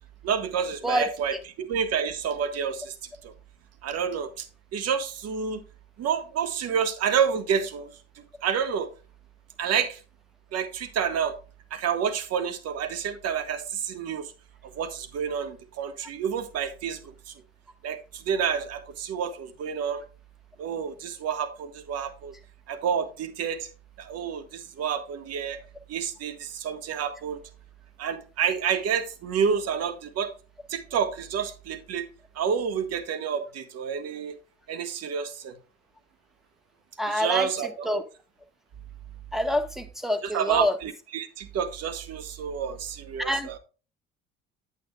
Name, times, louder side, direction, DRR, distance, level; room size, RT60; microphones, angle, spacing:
voice 1, 0.2-2.9 3.2-3.3 3.8-4.5 4.7-5.6 6.0-7.9 8.4-8.9 9.6-10.0 10.5-11.4 11.7-14.3 14.6-17.3 17.8-20.0 20.6-22.3 22.7-23.7 24.0-25.6 25.9-27.4 28.0-30.3 30.7-32.0 32.3-34.4 34.7-35.6 37.1-38.0 40.3-43.6, right 7 dB, 55° right, 1.6 m, -29 dB
voice 2, 37.0-37.5 37.8-38.0 39.3-40.8 43.2-43.6, left 1 dB, ahead, 1.5 m, -26 dB
9.1 x 8.9 x 2.4 m
hypercardioid pair, 60°, 30 cm